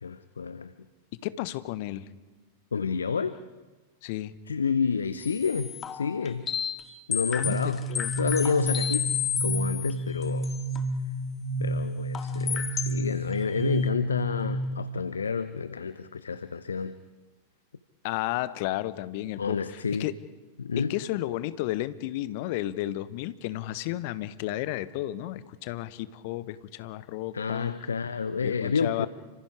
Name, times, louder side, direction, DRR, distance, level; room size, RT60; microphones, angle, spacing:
voice 1, 0.0-0.7 2.7-3.4 4.5-6.5 7.1-7.8 8.2-10.5 11.6-17.0 19.4-20.1 20.6-20.9 27.3-29.1, left 5 dB, 75° left, 14 dB, 0.8 m, -29 dB
voice 2, 1.2-2.1 4.0-4.3 7.4-8.1 18.0-20.1 20.8-27.8 28.4-29.1, left 15 dB, 50° left, 15 dB, 1.1 m, -33 dB
sound 1, 5.2-6.8 7.1-9.9 10.2-10.8 12.1-13.0 13.3-13.4, left 8 dB, 25° left, 2.0 m, -31 dB
sound 2, 7.4-15.0, right 1 dB, 10° right, 7.6 m, -31 dB
30.0 x 26.0 x 4.9 m, 1.2 s
figure-of-eight pair, 90°, 0 cm